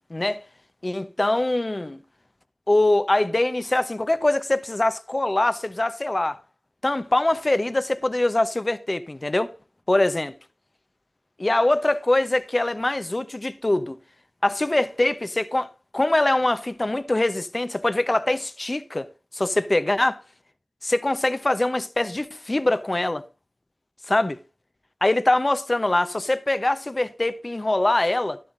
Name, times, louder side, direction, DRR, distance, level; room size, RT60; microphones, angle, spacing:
voice 1, 0.1-0.4 0.8-2.0 2.7-6.4 6.8-9.5 9.9-10.3 11.4-14.0 14.4-19.1 19.3-20.2 20.8-23.2 24.1-24.4 25.0-28.4, left 2 dB, 35° left, 1.0 m, -23 dB
12.0 x 11.0 x 2.7 m
wide cardioid pair, 50°, 0 cm